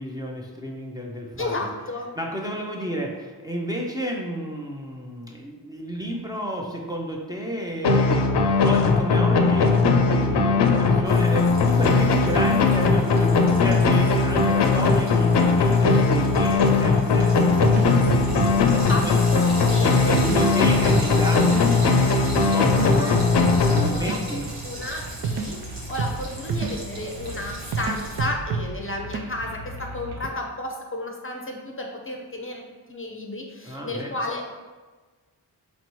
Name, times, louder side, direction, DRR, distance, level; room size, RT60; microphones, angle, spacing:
voice 1, 0.0-1.7 2.2-9.8 10.1-17.9 20.0-23.2 23.7-24.5 33.6-34.1, right 1 dB, 10° right, -2 dB, 0.6 m, -32 dB
voice 2, 1.4-2.1 18.9-20.5 22.3-22.5 22.8-23.2 23.9-32.6 32.9-34.5, left 2 dB, 30° left, 1 dB, 0.6 m, -33 dB
sound 1, 7.8-24.4, left 4 dB, 75° left, 0.6 m, -19 dB
Frying (food), 11.0-28.2, right 1 dB, 90° right, 1.2 m, -38 dB
sound 2, 16.5-30.3, right 4 dB, 70° right, 0.5 m, -31 dB
4.2 x 3.1 x 3.0 m, 1.3 s
cardioid pair, 60°, 41 cm